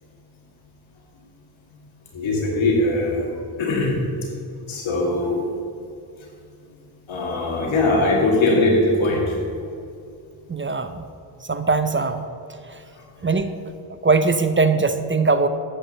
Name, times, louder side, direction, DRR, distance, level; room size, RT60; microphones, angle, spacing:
voice 1, 2.1-3.3 3.6-4.0 4.7-5.4 7.1-9.3, left 2 dB, 80° left, -1 dB, 2.2 m, -20 dB
voice 2, 10.5-11.1 11.4-12.3 12.7-12.8 13.2-13.6 14.0-15.5, right 4 dB, 25° right, 10 dB, 0.6 m, -20 dB
8.8 x 5.3 x 6.6 m, 2.4 s
supercardioid pair, 45°, 47 cm